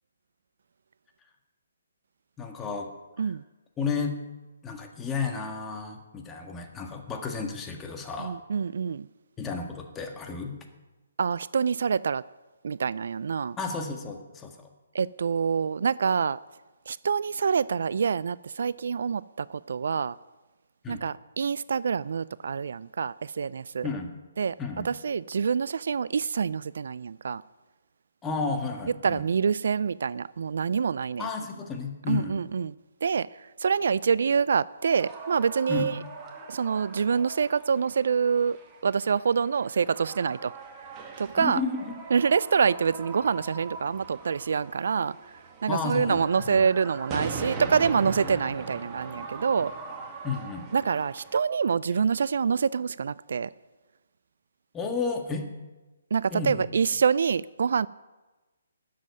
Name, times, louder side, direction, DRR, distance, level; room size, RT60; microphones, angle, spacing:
voice 1, 2.4-2.9 3.2-3.4 3.8-4.2 4.6-8.4 9.4-10.6 13.6-14.7 20.8-21.0 23.8-24.1 24.6-24.9 28.2-29.2 31.2-32.4 35.7-35.9 41.3-41.9 45.7-46.7 50.2-50.7 54.7-55.5 56.3-56.7, left 4 dB, 15° left, 1.7 m, -32 dB
voice 2, 8.2-9.1 11.2-12.2 12.6-13.6 14.9-16.4 16.9-20.2 20.9-23.9 24.4-24.5 24.8-27.4 29.0-31.3 32.1-32.7 33.0-33.3 33.6-36.0 36.5-38.6 38.8-40.5 41.2-41.6 42.1-45.2 45.6-49.7 50.7-53.5 56.1-57.9, right 6 dB, 65° right, 0.3 m, -26 dB
sound 1, 34.8-51.4, right 4 dB, 25° right, 1.9 m, -40 dB
13.0 x 7.6 x 9.6 m
figure-of-eight pair, 145°, 0 cm